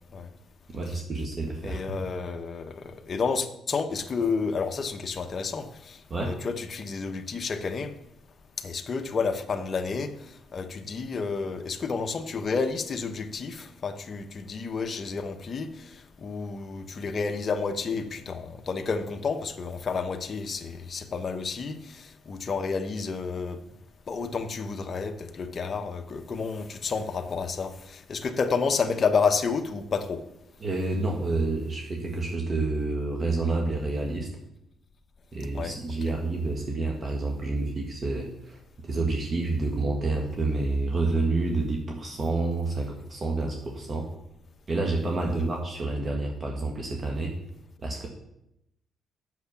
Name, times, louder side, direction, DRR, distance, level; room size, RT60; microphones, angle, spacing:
voice 1, 0.7-1.8 6.1-6.3 30.6-34.3 35.3-44.1 44.7-47.3 47.8-48.1, right 3 dB, 40° right, 1.5 m, -28 dB
voice 2, 1.6-7.9 8.6-10.1 10.5-23.6 24.1-30.2 35.5-35.8 36.0-36.2 45.4-45.5, left 5 dB, 45° left, 1.0 m, -30 dB
8.0 x 6.6 x 7.1 m
cardioid pair, 90°, 0 cm